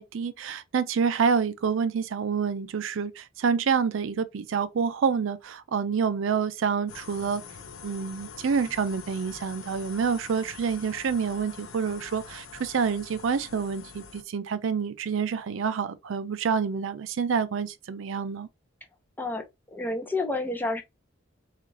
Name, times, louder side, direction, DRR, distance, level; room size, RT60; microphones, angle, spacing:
voice 1, 0.0-7.4 7.8-18.5, right 6 dB, 70° right, 0.4 m, -27 dB
sound 1, 6.9-14.2, left 6 dB, 80° left, 0.5 m, -45 dB
voice 2, 19.7-20.8, left 2 dB, 10° left, 0.6 m, -29 dB
3.7 x 2.4 x 3.1 m
head